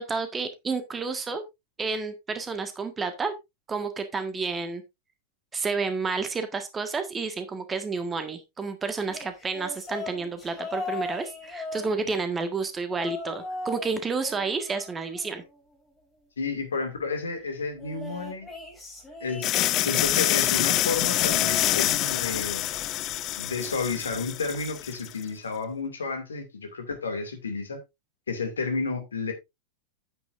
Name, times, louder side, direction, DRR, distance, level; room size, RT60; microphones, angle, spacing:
voice 1, 0.0-1.4 1.8-3.3 3.7-4.8 5.5-15.4, right 4 dB, 15° right, 1.6 m, -30 dB
sound 1, 9.1-12.4 12.9-13.9 14.2-15.7 17.8-20.0 20.9-22.3 22.7-23.0 24.2-24.3, left 2 dB, 15° left, 6.7 m, -39 dB
voice 2, 16.4-18.5 19.2-22.7 23.4-27.8 28.3-29.3, left 4 dB, 70° left, 2.4 m, -31 dB
sound 2, 19.4-25.1, left 14 dB, 35° left, 0.5 m, -26 dB
9.7 x 9.2 x 2.6 m
figure-of-eight pair, 90°, 0 cm